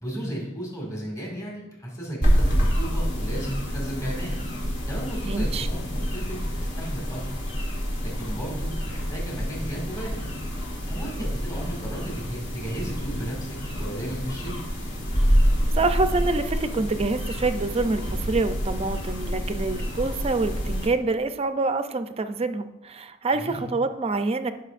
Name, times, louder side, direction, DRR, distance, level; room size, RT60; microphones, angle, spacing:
voice 1, 0.0-4.4 4.9-7.2 8.0-10.2 10.9-12.0 12.3-14.6 23.4-23.6, right 1 dB, 15° left, -3 dB, 2.1 m, -34 dB
sound 1, 2.2-20.9, equal, 60° left, 2.4 m, -27 dB
voice 2, 5.2-5.7 15.7-24.5, right 3 dB, 30° right, 9 dB, 0.5 m, -26 dB
16.5 x 5.6 x 2.5 m, 0.94 s
head